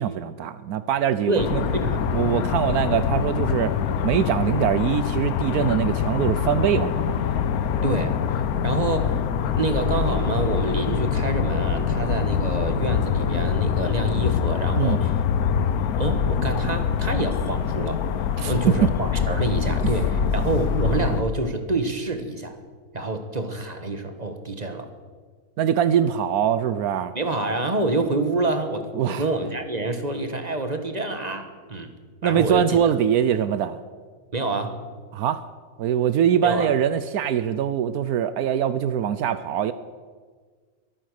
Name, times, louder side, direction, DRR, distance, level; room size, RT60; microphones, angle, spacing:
voice 1, 0.0-1.6 2.1-3.7 4.0-7.1 14.7-15.0 18.4-18.5 18.8-18.9 25.6-27.1 29.0-29.2 32.2-33.8 35.1-35.4 35.8-39.7, right 9 dB, 80° right, 13 dB, 1.1 m, -23 dB
voice 2, 1.3-2.1 7.8-15.1 16.0-18.1 18.5-22.6 22.9-24.9 27.1-31.9 32.2-32.8 34.3-34.8 36.4-36.7, right 2 dB, 30° right, 7 dB, 1.3 m, -27 dB
sound 1, 1.4-21.2, left 7 dB, 75° left, 1.2 m, -24 dB
23.5 x 9.4 x 6.5 m, 1.5 s
omnidirectional pair, 1.6 m